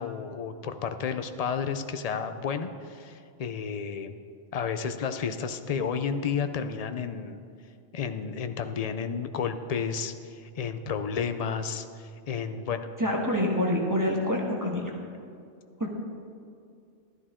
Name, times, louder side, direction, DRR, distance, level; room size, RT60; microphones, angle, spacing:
voice 1, 0.0-4.1 4.5-7.4 7.9-12.9, left 6 dB, 50° left, 9 dB, 0.4 m, -32 dB
voice 2, 13.0-14.9 15.8-15.9, left 1 dB, 15° right, -1 dB, 1.2 m, -26 dB
12.5 x 11.0 x 3.7 m, 2.4 s
omnidirectional pair, 1.2 m